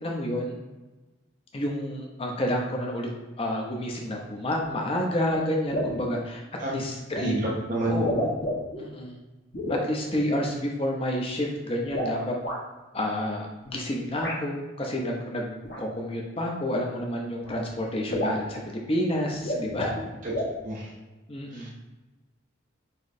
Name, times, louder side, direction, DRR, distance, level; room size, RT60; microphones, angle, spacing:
voice 1, 0.0-0.6 1.5-3.1 3.4-6.4 6.7-7.3 7.9-8.5 8.8-9.2 9.7-12.3 12.9-18.6 18.9-19.9 21.3-21.7, left 1 dB, 30° left, 0 dB, 0.7 m, -29 dB
sound 1, 5.3-5.4 5.7-6.1 7.1-7.3 7.9-8.8 9.5-9.9 11.8-12.6 14.2-14.4 15.6-15.8 17.0-17.1 17.4-17.5 17.8-17.9 18.1-18.5 19.3-20.0 20.3-20.6, equal, 55° left, 1.2 m, -30 dB
voice 2, 7.2-8.0 20.2-20.3 20.6-20.9 21.5-21.8, right 1 dB, 40° right, -4 dB, 0.7 m, -29 dB
5.7 x 3.1 x 2.7 m, 1.2 s
head